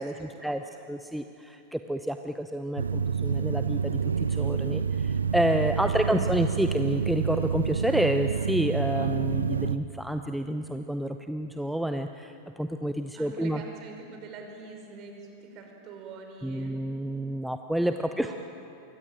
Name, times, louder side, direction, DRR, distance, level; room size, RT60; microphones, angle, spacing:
voice 1, 0.0-0.9 13.1-16.7 18.1-18.4, right 4 dB, 35° right, 3 dB, 5.8 m, -45 dB
voice 2, 0.9-13.6 16.4-18.3, right 1 dB, ahead, 7 dB, 0.9 m, -29 dB
Room tone pasillo Hotel.L, 2.8-9.8, right 6 dB, 75° right, 0.6 m, -28 dB
27.0 x 23.5 x 9.2 m, 2.8 s
figure-of-eight pair, 90°, 0 cm